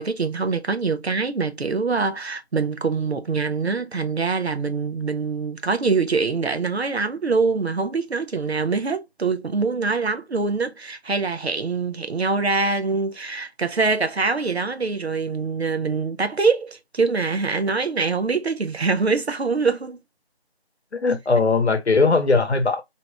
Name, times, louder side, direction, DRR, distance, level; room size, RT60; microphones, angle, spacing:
voice 1, 0.0-20.0, right 4 dB, 70° right, 0.7 m, -24 dB
voice 2, 20.9-22.8, left 4 dB, 80° left, 0.8 m, -19 dB
2.9 x 2.2 x 2.8 m
figure-of-eight pair, 180°, 33 cm